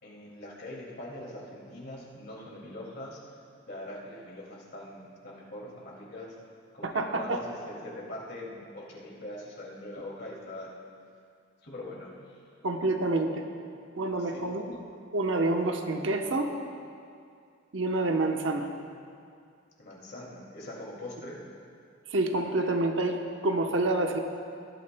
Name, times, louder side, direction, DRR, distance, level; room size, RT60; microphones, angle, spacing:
voice 1, 0.0-3.2 3.7-6.3 6.7-10.7 11.6-12.1 14.3-14.4 19.8-21.4, left 1 dB, 55° left, -4 dB, 2.4 m, -42 dB
voice 2, 6.8-7.4 12.6-13.4 14.0-14.8 15.1-16.5 17.7-18.7 22.1-24.2, right 2 dB, 75° right, 4 dB, 0.9 m, -28 dB
18.5 x 12.0 x 2.2 m, 2.4 s
head